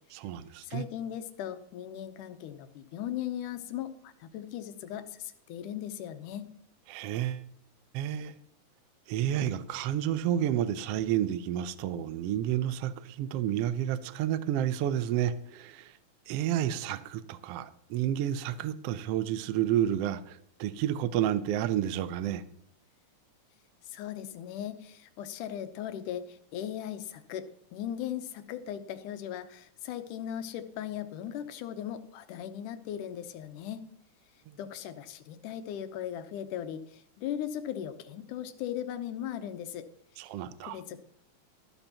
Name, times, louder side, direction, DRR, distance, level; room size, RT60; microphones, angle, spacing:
voice 1, 0.1-0.8 6.9-7.4 7.9-8.3 9.1-16.0 16.3-22.4 40.2-40.8, right 11 dB, 85° right, 13 dB, 1.3 m, -30 dB
voice 2, 0.6-6.5 23.9-33.9 34.6-39.9 40.6-41.0, left 10 dB, 85° left, 9 dB, 2.4 m, -38 dB
13.5 x 12.5 x 2.9 m, 0.69 s
omnidirectional pair, 3.6 m